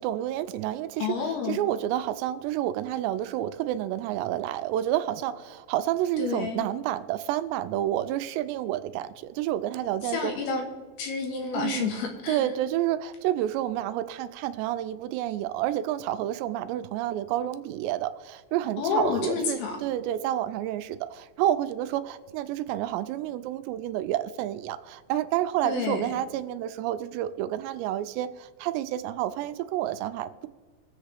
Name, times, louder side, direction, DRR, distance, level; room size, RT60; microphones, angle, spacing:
voice 1, 0.0-10.3 11.5-11.9 12.3-30.5, right 12 dB, 85° right, 11 dB, 2.6 m, -29 dB
voice 2, 1.0-1.6 6.2-6.7 10.0-10.7 11.0-12.5 18.8-19.8 25.6-26.1, left 5 dB, 70° left, 2 dB, 3.2 m, -29 dB
23.0 x 8.0 x 3.4 m, 1.4 s
omnidirectional pair, 5.2 m